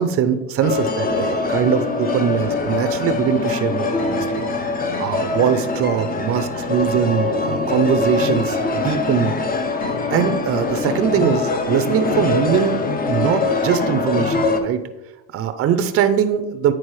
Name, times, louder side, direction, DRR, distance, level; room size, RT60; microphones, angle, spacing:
voice 1, 0.0-4.4 5.0-9.3 10.1-12.8 13.1-14.8 15.3-16.7, right 8 dB, 40° right, 9 dB, 0.6 m, -21 dB
sound 1, 0.6-14.6, left 3 dB, 25° left, 0.6 m, -23 dB
9.0 x 3.9 x 3.1 m, 1.0 s
supercardioid pair, 95°, 35 cm